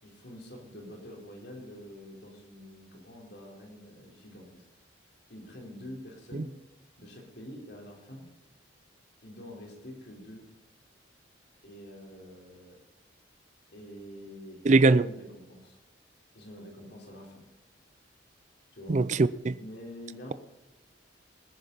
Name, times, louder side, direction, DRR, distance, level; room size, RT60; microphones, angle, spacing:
voice 1, 0.0-4.6 5.3-6.6 7.0-8.3 9.2-10.5 11.6-12.8 13.7-15.8 16.3-17.5 18.7-19.1 19.6-20.3, left 1 dB, 60° left, 4.0 m, -46 dB
voice 2, 14.7-15.0 18.9-19.6, right 3 dB, 40° right, 0.4 m, -21 dB
20.0 x 10.0 x 4.1 m
head